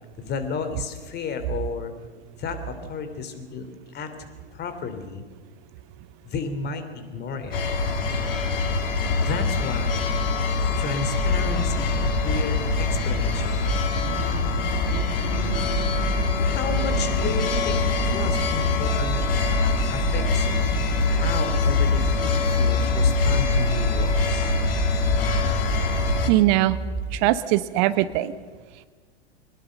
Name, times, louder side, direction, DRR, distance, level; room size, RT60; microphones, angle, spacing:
voice 1, 0.2-1.9 2.4-3.7 3.9-4.1 4.5-5.2 6.2-7.6 9.2-10.1 10.7-14.3 16.4-19.3 19.9-20.5 21.0-24.5, left 4 dB, 30° left, 9 dB, 3.3 m, -33 dB
sound 1, 7.5-26.3, left 4 dB, 65° left, 3.2 m, -24 dB
sound 2, 11.2-27.2, right 5 dB, 20° right, 0.9 m, -31 dB
voice 2, 26.3-26.8 27.1-28.3, right 15 dB, 45° right, 14 dB, 1.0 m, -20 dB
23.5 x 20.0 x 6.6 m, 1.4 s
figure-of-eight pair, 90°, 32 cm